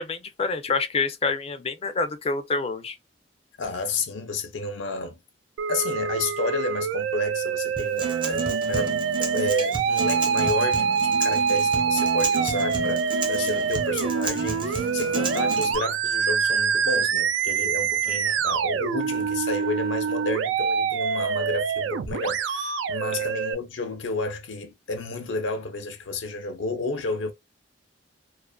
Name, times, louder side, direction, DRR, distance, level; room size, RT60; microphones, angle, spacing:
voice 1, 0.0-3.0 18.1-18.4 23.1-23.3, left 4 dB, 35° left, 0.4 m, -27 dB
voice 2, 3.6-5.2 5.7-8.9 9.2-27.3, left 2 dB, 80° left, 0.6 m, -31 dB
Musical instrument, 5.6-23.5, right 6 dB, 80° right, 0.3 m, -25 dB
Acoustic guitar, 7.8-15.8, right 3 dB, 30° right, 0.6 m, -31 dB
2.4 x 2.3 x 2.2 m
head